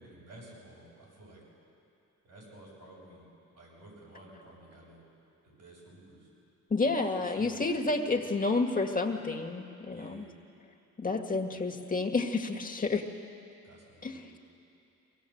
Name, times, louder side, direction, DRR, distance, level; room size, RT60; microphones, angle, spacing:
voice 1, 0.0-1.4 2.2-3.3 3.5-5.0 5.4-6.3 7.2-7.8 8.0-8.3 9.8-10.3 11.5-11.6 13.6-14.3, right 1 dB, 80° right, -5 dB, 7.8 m, -53 dB
voice 2, 6.7-10.3 11.0-13.1 14.0-14.3, left 3 dB, 25° left, 2 dB, 1.9 m, -30 dB
23.0 x 18.0 x 8.0 m, 2.6 s
cardioid pair, 95°, 32 cm